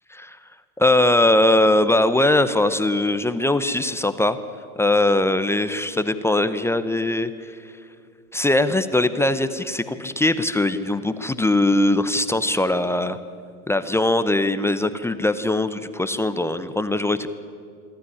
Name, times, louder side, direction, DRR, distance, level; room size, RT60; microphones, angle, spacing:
voice 1, 0.8-4.4 4.8-7.6 8.3-13.2 13.7-17.3, left 2 dB, 5° left, 12 dB, 0.7 m, -21 dB
25.5 x 13.0 x 9.9 m, 2.3 s
hypercardioid pair, 100°, 44 cm